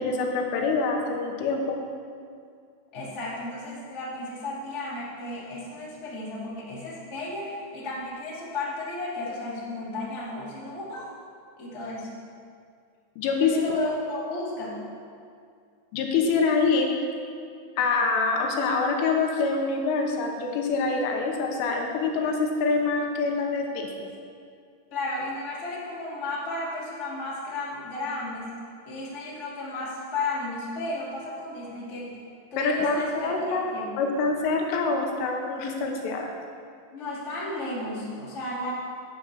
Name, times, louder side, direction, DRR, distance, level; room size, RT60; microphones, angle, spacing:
voice 1, 0.0-1.8 13.2-13.6 15.9-17.0 17.8-24.1 32.6-36.3, left 4 dB, 80° left, 2 dB, 3.4 m, -25 dB
voice 2, 2.9-11.1 11.6-12.1 13.4-14.8 24.9-28.5 28.8-32.1 32.5-33.9 36.9-38.7, left 2 dB, 35° left, -7 dB, 1.1 m, -33 dB
11.0 x 8.2 x 6.0 m, 2.3 s
omnidirectional pair, 5.9 m